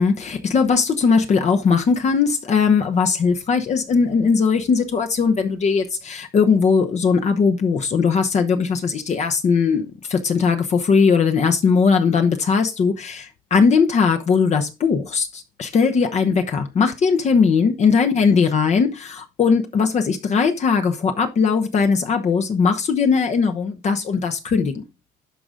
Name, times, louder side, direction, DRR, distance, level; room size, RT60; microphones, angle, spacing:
voice 1, 0.0-24.8, left 5 dB, 45° left, 0.9 m, -19 dB
11.5 x 3.9 x 3.7 m
cardioid pair, 110°, 17 cm